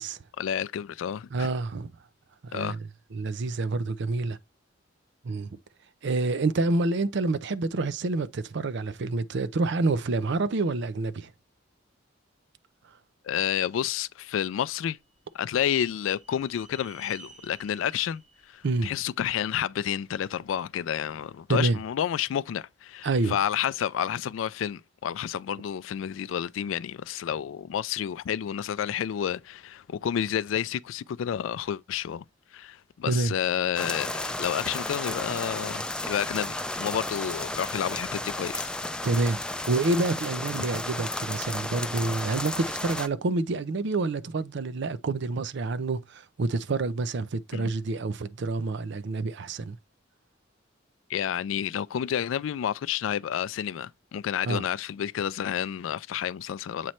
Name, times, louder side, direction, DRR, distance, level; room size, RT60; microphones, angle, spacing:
voice 1, 0.4-1.5 2.5-2.8 13.2-15.0 15.3-18.2 18.5-32.2 32.5-38.7 40.6-40.7 47.5-47.7 51.1-56.9, left 9 dB, 80° left, 0.3 m, -30 dB
voice 2, 1.3-1.9 2.4-2.8 3.1-4.4 5.2-5.5 6.0-11.3 18.6-18.9 21.5-21.8 23.0-23.4 33.1-33.4 39.0-49.8 54.4-54.6, right 3 dB, 65° right, 0.5 m, -28 dB
sound 1, 14.9-19.8, right 4 dB, 35° right, 1.2 m, -54 dB
sound 2, 33.8-43.1, left 1 dB, 5° left, 0.4 m, -33 dB
7.5 x 3.1 x 4.2 m
head